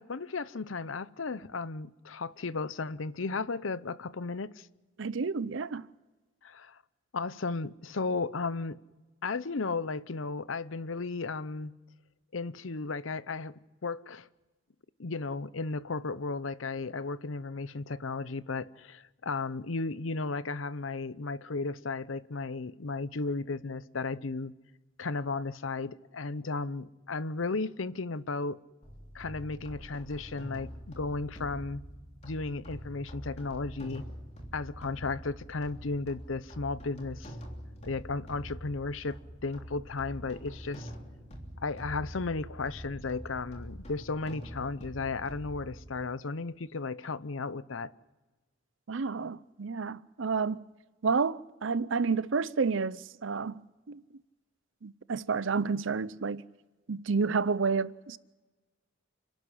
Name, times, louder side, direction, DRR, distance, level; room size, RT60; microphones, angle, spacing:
voice 1, 0.0-4.7 6.4-6.8 7.1-8.8 9.2-11.7 12.3-14.3 15.0-24.5 25.0-28.6 29.1-31.8 32.2-34.0 34.5-37.3 37.8-40.9 41.6-47.9, left 3 dB, 80° left, 0.8 m, -34 dB
voice 2, 5.0-5.9 48.9-50.6 51.0-54.0 54.8-56.4 56.9-58.2, right 5 dB, 70° right, 0.6 m, -30 dB
sound 1, 28.8-46.0, equal, 35° left, 3.4 m, -45 dB
29.5 x 12.0 x 9.9 m
head